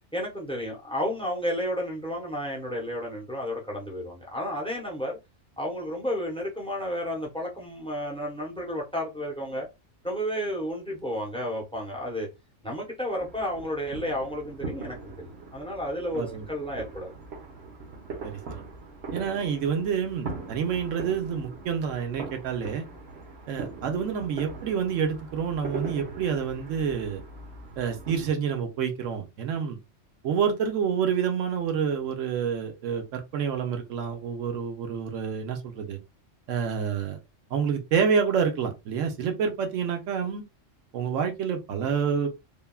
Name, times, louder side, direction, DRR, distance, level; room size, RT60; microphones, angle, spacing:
voice 1, 0.1-5.2 5.6-9.7 10.0-12.3 12.6-17.1, equal, 5° left, 0.6 m, -32 dB
sound 1, 13.2-28.3, right 4 dB, 60° right, 1.2 m, -41 dB
voice 2, 16.1-16.5 18.2-18.6 19.1-22.9 23.5-27.2 27.8-29.8 30.2-36.0 36.5-37.2 37.5-40.4 40.9-42.3, right 7 dB, 85° right, 1.1 m, -28 dB
3.4 x 2.3 x 2.2 m
omnidirectional pair, 1.3 m